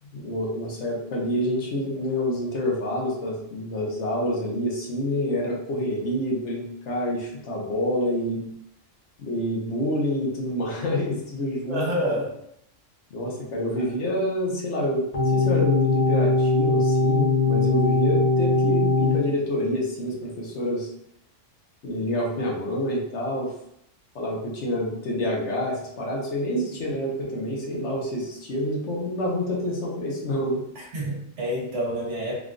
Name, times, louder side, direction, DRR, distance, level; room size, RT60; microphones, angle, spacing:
voice 1, 0.0-8.4 9.2-11.9 13.1-20.9 21.8-23.5 24.1-30.6, left 1 dB, 70° left, -3 dB, 1.1 m, -27 dB
voice 2, 11.7-12.3 13.8-13.9 26.7-26.8 30.7-32.4, equal, 70° right, -3 dB, 1.2 m, -28 dB
sound 1, 15.1-19.2, left 3 dB, 35° left, 0.9 m, -21 dB
3.6 x 2.2 x 2.5 m, 0.73 s
omnidirectional pair, 1.3 m